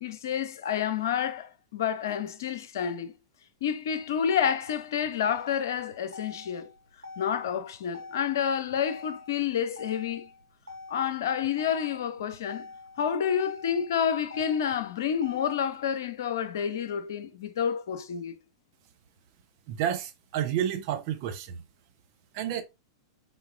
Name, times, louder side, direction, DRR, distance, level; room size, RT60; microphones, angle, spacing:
voice 1, 0.0-3.1 3.6-6.7 7.2-10.3 10.9-12.7 13.0-18.4, left 8 dB, 60° left, 0.6 m, -29 dB
Motor vehicle (road), 3.9-15.9, left 3 dB, 85° right, 0.8 m, -47 dB
voice 2, 19.7-21.6 22.3-22.6, right 10 dB, 50° right, 0.7 m, -30 dB
3.8 x 3.7 x 2.5 m
figure-of-eight pair, 95°, 2 cm